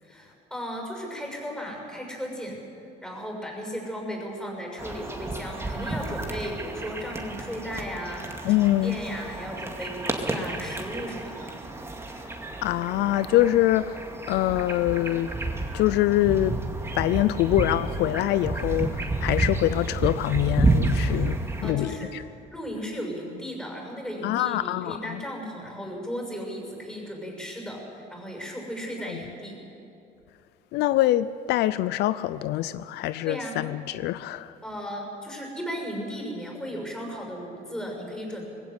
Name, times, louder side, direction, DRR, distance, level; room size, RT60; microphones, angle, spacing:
voice 1, 0.0-11.5 21.6-22.1 22.5-29.5 33.2-33.6 34.6-38.5, equal, 5° left, 6.6 m, -35 dB
sound 1, 4.8-21.7, right 2 dB, 15° right, 2.2 m, -30 dB
voice 2, 8.4-9.0 12.6-14.0 14.3-15.3 15.7-16.6 17.0-22.2 24.2-25.2 30.7-34.5, left 14 dB, 80° left, 0.5 m, -24 dB
20.0 x 16.5 x 8.2 m
cardioid pair, 110°, 17 cm